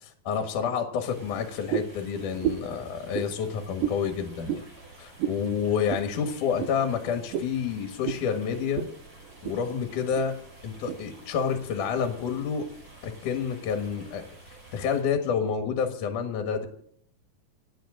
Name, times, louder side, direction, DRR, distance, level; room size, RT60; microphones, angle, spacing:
voice 1, 0.0-4.6 5.0-8.9 9.4-10.3 10.6-12.7 13.0-14.2 14.7-16.7, left 6 dB, 65° left, 5 dB, 2.9 m, -29 dB
sound 1, 1.1-15.0, right 2 dB, 35° right, 6.4 m, -50 dB
sound 2, 1.7-2.0 2.4-2.7 3.1-3.3 3.8-4.0 4.5-4.7 5.2-5.4 5.9-6.1 6.6-6.7 7.3-7.5 8.0-8.2 8.7-8.9 9.2-9.6 10.1-10.3 10.9-11.0, right 11 dB, 80° right, 2.5 m, -30 dB
27.5 x 9.3 x 3.8 m, 0.64 s
omnidirectional pair, 4.0 m